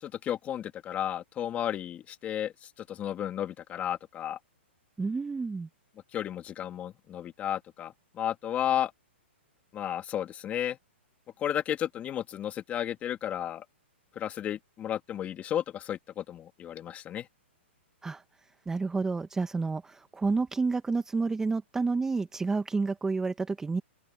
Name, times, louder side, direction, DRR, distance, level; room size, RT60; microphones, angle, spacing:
voice 1, 0.0-4.4 6.1-8.9 9.7-10.8 11.4-13.6 14.2-17.3, left 10 dB, 20° left, 2.0 m, -33 dB
voice 2, 5.0-5.7 18.0-18.2 18.7-23.8, right 4 dB, 10° right, 0.9 m, -29 dB
open air
hypercardioid pair, 145°, 7 cm